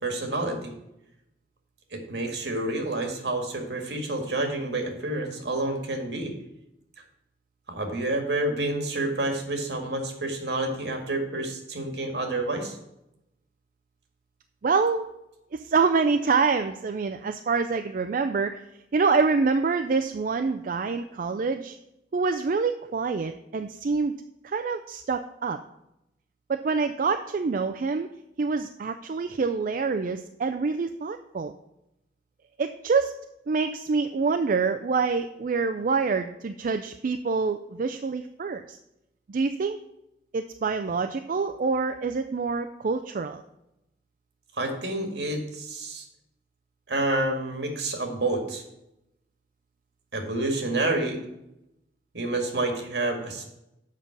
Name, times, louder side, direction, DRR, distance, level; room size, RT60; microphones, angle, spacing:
voice 1, 0.0-0.7 1.9-6.3 7.7-12.8 44.6-46.1 46.9-48.6 50.1-51.2 52.1-53.4, right 2 dB, 70° right, 4 dB, 1.9 m, -29 dB
voice 2, 14.6-15.1 15.5-18.6 18.9-21.8 22.1-24.1 24.4-25.6 26.5-28.1 28.4-31.5 32.6-33.1 33.5-38.8 39.3-39.8 40.3-43.4, right 4 dB, 50° right, 7 dB, 0.4 m, -26 dB
7.4 x 5.4 x 7.2 m, 0.87 s
head